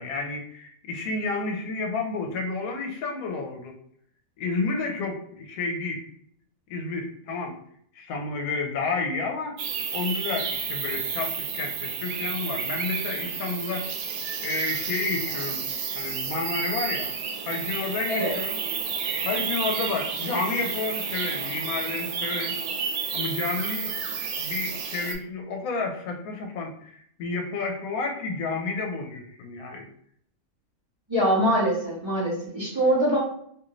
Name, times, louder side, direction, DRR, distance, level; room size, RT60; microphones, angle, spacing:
voice 1, 0.0-3.7 4.4-6.0 6.7-7.6 8.0-9.6 9.9-13.9 14.4-15.7 15.9-17.1 17.4-18.6 19.2-22.6 23.1-24.0 24.4-29.9, left 3 dB, 75° left, 3 dB, 1.0 m, -30 dB
sound 1, 9.6-25.1, right 6 dB, 85° right, 1.1 m, -31 dB
voice 2, 31.1-33.2, right 1 dB, 30° right, -7 dB, 0.6 m, -23 dB
2.7 x 2.5 x 3.0 m, 0.67 s
omnidirectional pair, 1.6 m